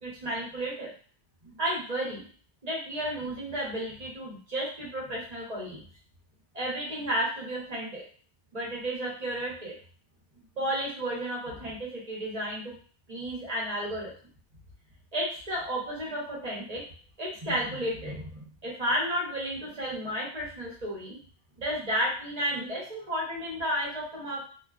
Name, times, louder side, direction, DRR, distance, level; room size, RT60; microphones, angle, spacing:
voice 1, 0.0-0.9 1.4-2.3 2.6-5.8 6.5-8.0 8.5-9.7 10.6-12.8 13.1-14.1 15.1-16.8 17.2-21.2 21.6-24.4, equal, 40° right, -5 dB, 0.9 m, -32 dB
2.4 x 2.2 x 2.4 m, 0.43 s
omnidirectional pair, 1.1 m